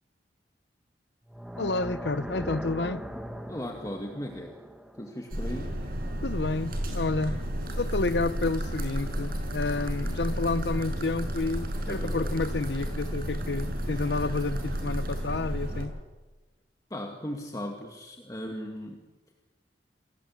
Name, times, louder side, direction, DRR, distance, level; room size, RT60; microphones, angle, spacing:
sound 1, 1.2-6.4, equal, 5° right, 1.7 m, -40 dB
voice 1, 1.6-3.1 6.2-7.4 7.8-16.0, left 3 dB, 70° left, 0.8 m, -30 dB
voice 2, 3.5-4.5 5.0-5.8 11.9-12.3 16.9-19.1, equal, 20° left, 2.4 m, -37 dB
sound 2, 5.3-15.9, equal, 55° right, 6.7 m, -32 dB
29.0 x 20.5 x 8.6 m
head